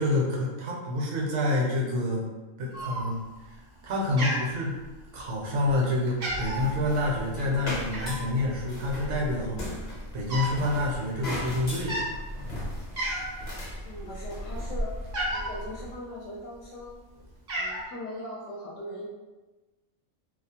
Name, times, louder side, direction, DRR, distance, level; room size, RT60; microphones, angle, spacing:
voice 1, 0.0-2.2 2.6-3.2 3.8-4.8 5.1-12.2, left 1 dB, 70° right, -2 dB, 0.9 m, -28 dB
Cat, 2.7-3.4 3.7-5.2 5.7-5.8 6.1-6.7 7.9-8.3 9.1-9.2 9.4-10.6 10.9-11.1 11.8-12.1 12.6-12.7 13.0-13.5 13.9-15.6 16.4-16.9 17.2-17.8, right 1 dB, 50° right, 0.5 m, -33 dB
sound 1, 6.2-16.0, equal, 45° left, 0.7 m, -37 dB
sound 2, 7.5-7.7 8.0-8.2 11.2-11.9, left 1 dB, 25° left, 0.3 m, -41 dB
voice 2, 13.8-15.0 15.3-17.0 17.5-19.0, left 1 dB, 75° left, -5 dB, 0.9 m, -40 dB
2.4 x 2.0 x 2.7 m, 1.2 s
omnidirectional pair, 1.3 m